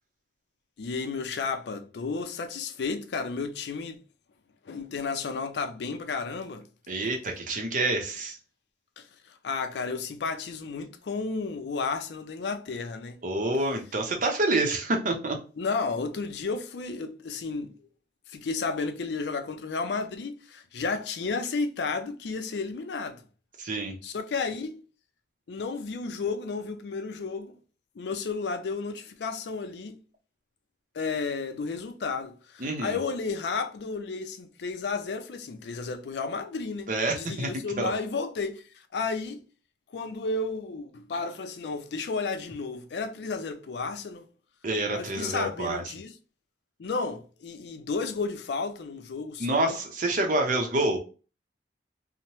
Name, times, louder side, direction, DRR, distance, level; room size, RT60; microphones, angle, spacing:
voice 1, 0.8-4.0 4.6-6.7 9.0-13.2 15.6-17.9 18.3-23.2 24.0-24.8 25.5-27.5 28.0-30.0 30.9-39.4 39.9-44.3 44.9-46.1 46.8-49.8, left 4 dB, 70° left, 0.4 m, -32 dB
voice 2, 6.9-8.4 13.2-15.4 23.6-23.9 32.6-33.0 36.9-37.5 37.8-37.9 44.6-45.8 49.4-51.0, right 2 dB, 45° right, 0.6 m, -27 dB
2.8 x 2.1 x 3.0 m
head